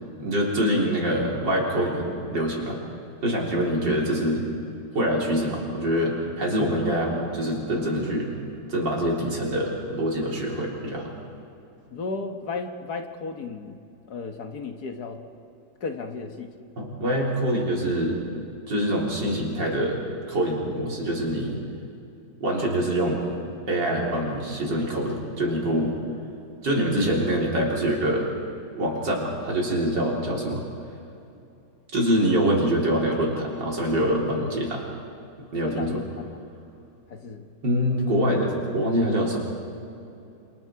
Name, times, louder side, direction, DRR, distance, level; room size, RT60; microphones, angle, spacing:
voice 1, 0.2-2.8 3.2-4.5 4.9-8.3 8.7-11.1 16.8-18.2 18.7-20.0 20.3-21.6 22.4-23.3 23.7-26.0 26.6-28.3 28.8-30.6 31.9-34.9 35.5-36.0 37.6-39.4, equal, 75° right, -2 dB, 4.6 m, -25 dB
voice 2, 11.9-13.8 14.1-15.2 15.8-16.5 35.6-36.4 37.1-37.5, left 4 dB, 60° left, 5 dB, 1.8 m, -34 dB
28.0 x 27.5 x 4.8 m, 2.8 s
omnidirectional pair, 2.0 m